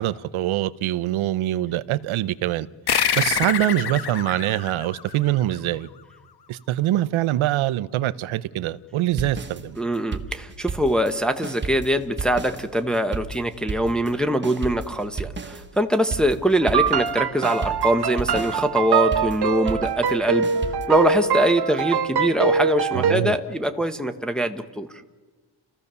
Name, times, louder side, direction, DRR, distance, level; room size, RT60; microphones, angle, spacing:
voice 1, 0.0-2.7 3.1-5.9 6.5-9.8 22.9-23.4, right 14 dB, 80° right, 0.8 m, -24 dB
sound 1, 2.9-5.8, left 8 dB, 55° left, 1.2 m, -26 dB
sound 2, 9.2-11.2 11.4-17.2 17.4-20.9, right 4 dB, 25° right, 1.2 m, -33 dB
voice 2, 9.8-20.5 20.9-24.9, equal, ahead, 1.0 m, -23 dB
sound 3, 16.6-23.1, right 6 dB, 55° right, 1.2 m, -23 dB
29.5 x 15.0 x 6.8 m
cardioid pair, 135°, 47 cm